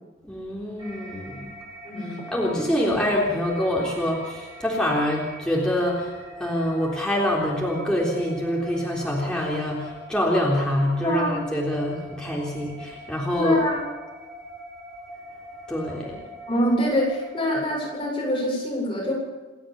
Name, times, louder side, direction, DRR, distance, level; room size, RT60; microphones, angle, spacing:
voice 1, 0.2-1.5 2.3-6.1 6.4-13.6 15.7-16.2, left 1 dB, 5° left, -4 dB, 3.6 m, -25 dB
sound 1, 0.8-17.9, equal, 20° right, 7.8 m, -43 dB
voice 2, 1.8-2.2 11.0-11.4 13.3-13.8 16.5-19.1, left 1 dB, 25° left, -3 dB, 7.4 m, -24 dB
28.5 x 13.0 x 7.2 m, 1.3 s
head